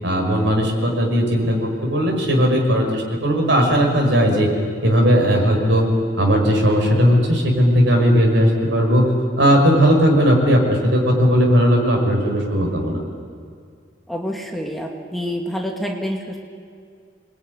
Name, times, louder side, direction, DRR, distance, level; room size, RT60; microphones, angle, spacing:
voice 1, 0.0-4.5 4.8-5.9 6.2-9.1 9.4-13.0, equal, 85° right, 1 dB, 6.0 m, -17 dB
voice 2, 14.1-16.4, equal, ahead, 0 dB, 2.4 m, -27 dB
26.5 x 21.0 x 9.8 m, 2.2 s
head